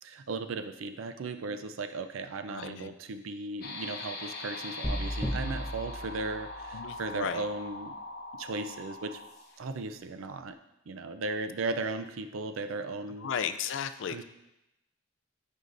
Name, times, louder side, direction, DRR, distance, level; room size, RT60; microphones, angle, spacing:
voice 1, 0.0-8.0 8.3-9.2 9.6-10.6 10.9-13.3 14.1-14.2, right 3 dB, 80° right, 8 dB, 0.5 m, -36 dB
voice 2, 2.5-2.9 6.7-7.5 13.2-14.2, left 7 dB, 65° left, 11 dB, 0.4 m, -35 dB
sound 1, 3.6-9.7, left 2 dB, 50° left, 0.9 m, -42 dB
sound 2, 4.8-7.0, equal, ahead, 0.8 m, -35 dB
9.4 x 5.6 x 2.6 m, 0.90 s
head